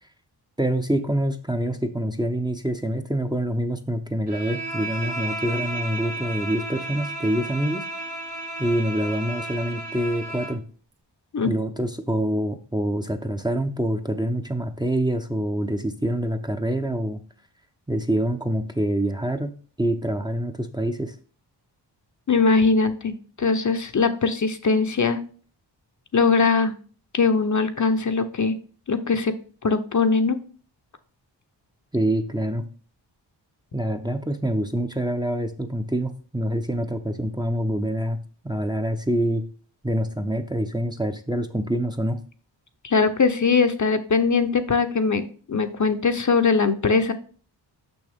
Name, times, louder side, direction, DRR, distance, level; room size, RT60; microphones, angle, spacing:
voice 1, 0.6-7.8 8.6-10.6 11.4-17.2 17.9-21.1 31.9-32.6 33.7-38.2 38.4-39.5 39.8-42.2, right 1 dB, 10° right, 5 dB, 0.7 m, -26 dB
Bowed string instrument, 4.3-10.6, right 2 dB, 70° right, 1.6 m, -33 dB
voice 2, 22.3-25.2 26.1-26.7 27.1-28.6 28.9-29.4 29.6-30.4 42.8-47.1, left 4 dB, 40° left, 8 dB, 0.8 m, -21 dB
6.2 x 6.0 x 3.5 m, 0.40 s
cardioid pair, 70°, 43 cm